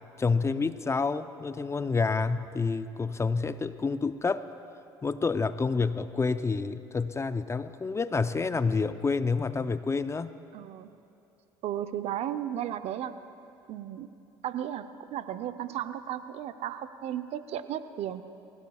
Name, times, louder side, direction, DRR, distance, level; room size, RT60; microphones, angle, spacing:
voice 1, 0.2-4.5 5.0-10.3, left 4 dB, 25° left, 12 dB, 0.5 m, -28 dB
voice 2, 10.5-10.9 11.6-13.1 13.7-14.1 14.4-18.2, right 11 dB, 60° right, 10 dB, 0.7 m, -34 dB
23.5 x 16.0 x 2.4 m, 2.8 s
hypercardioid pair, 70°, 12 cm